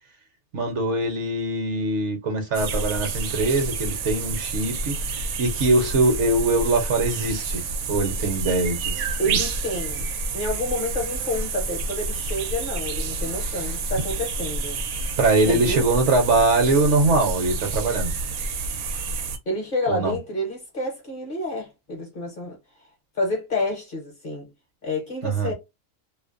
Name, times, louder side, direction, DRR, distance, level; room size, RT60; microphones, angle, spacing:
voice 1, 0.5-5.0 5.4-7.6 7.9-9.5 13.4-13.7 15.2-18.1 19.9-20.1 25.2-25.5, right 2 dB, 65° right, 1.0 m, -22 dB
sound 1, 2.5-19.4, right 4 dB, 85° right, 1.0 m, -29 dB
voice 2, 9.2-10.1 10.3-14.8 15.5-15.8 19.5-22.6 23.1-24.5 24.8-25.5, left 1 dB, 45° left, 0.9 m, -29 dB
2.5 x 2.0 x 2.4 m
omnidirectional pair, 1.4 m